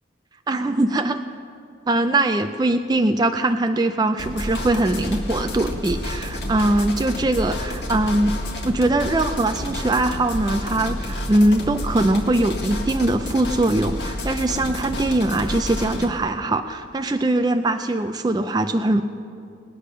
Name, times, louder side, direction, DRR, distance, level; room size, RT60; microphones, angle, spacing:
voice 1, 0.5-1.2 1.9-8.3 8.6-19.0, right 2 dB, 20° right, 7 dB, 0.4 m, -21 dB
sound 1, 4.2-16.1, left 1 dB, 65° left, 1.7 m, -30 dB
20.0 x 8.4 x 6.2 m, 2.4 s
head